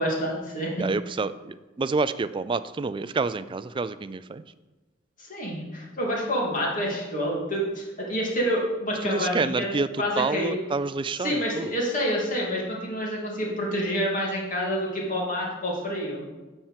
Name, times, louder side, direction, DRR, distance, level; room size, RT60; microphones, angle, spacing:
voice 1, 0.0-0.9 5.2-9.7 10.0-10.6 11.2-16.2, equal, 45° left, -3 dB, 2.7 m, -28 dB
voice 2, 0.8-4.4 9.0-9.9 10.2-11.7, right 4 dB, 25° right, 14 dB, 0.3 m, -28 dB
9.9 x 4.5 x 7.5 m, 1.2 s
head